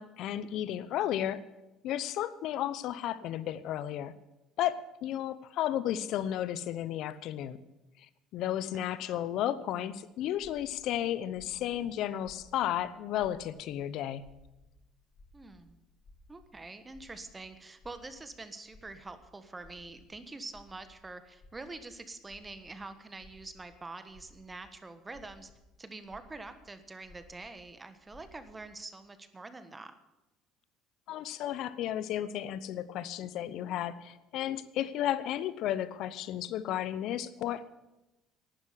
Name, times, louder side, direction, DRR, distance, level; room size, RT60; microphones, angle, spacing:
voice 1, 0.0-1.4 1.8-4.1 4.6-7.6 8.0-8.1 8.3-14.3 31.1-37.7, left 11 dB, 65° left, 16 dB, 0.8 m, -33 dB
voice 2, 8.7-9.2 15.3-15.8 16.3-25.5 25.8-29.9, right 3 dB, 20° right, 10 dB, 1.4 m, -46 dB
sound 1, 10.3-13.7 14.0-15.7 15.9-16.5 16.9-17.5 17.7-18.4 18.6-19.2 19.6-20.1 20.5-21.9 22.2-22.8 23.1-23.7 24.1-24.6 25.0-26.6 27.0-27.5 28.0-28.8, left 2 dB, 45° left, 5.5 m, -58 dB
12.0 x 9.7 x 9.6 m, 0.99 s
supercardioid pair, 80°, 0 cm